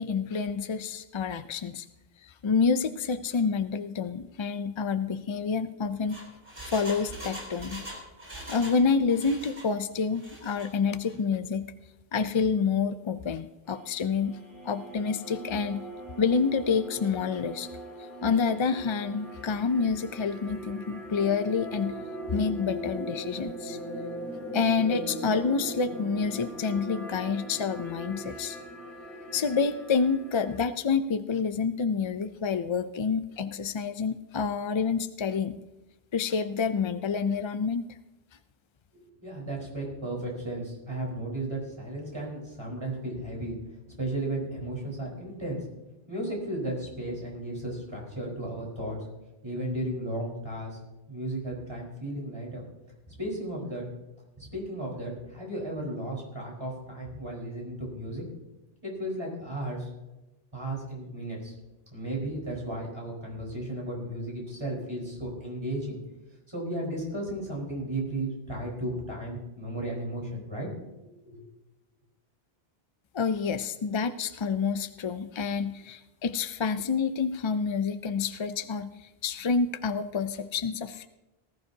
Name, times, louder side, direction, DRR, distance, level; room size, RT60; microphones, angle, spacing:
voice 1, 0.0-1.9 2.2-6.2 6.6-7.8 8.3-11.7 12.1-14.4 14.6-15.8 16.2-17.7 18.0-21.9 22.3-23.8 24.5-28.6 29.3-35.6 36.1-37.9 73.1-81.1, left 5 dB, 50° left, 10 dB, 0.3 m, -28 dB
Engine, 5.8-8.8 9.1-9.7 10.1-10.7 11.0-11.1, right 1 dB, 60° right, 4.2 m, -42 dB
sound 1, 13.7-30.6, equal, ahead, 3.5 m, -40 dB
voice 2, 38.9-43.5 44.0-45.6 46.1-49.0 49.4-50.8 51.1-52.6 53.1-53.8 54.4-58.2 58.8-59.9 60.5-61.5 61.9-66.0 66.5-70.7 71.0-71.4, right 1 dB, 25° right, -2 dB, 4.5 m, -34 dB
19.0 x 14.0 x 2.8 m, 1.0 s
omnidirectional pair, 1.0 m